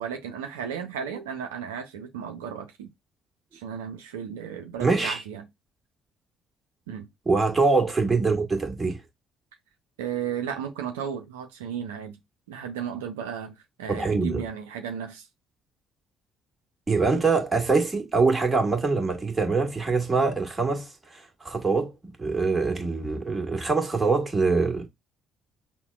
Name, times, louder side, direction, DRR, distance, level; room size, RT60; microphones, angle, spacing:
voice 1, 0.0-2.9 3.5-5.5 6.9-7.1 10.0-12.2 12.5-15.3, right 8 dB, 80° right, 0.5 m, -34 dB
voice 2, 4.8-5.2 7.2-9.0 13.9-14.4 16.9-21.9 22.2-24.9, right 4 dB, 20° right, 1.5 m, -24 dB
5.7 x 2.2 x 2.4 m
hypercardioid pair, 50°, 0 cm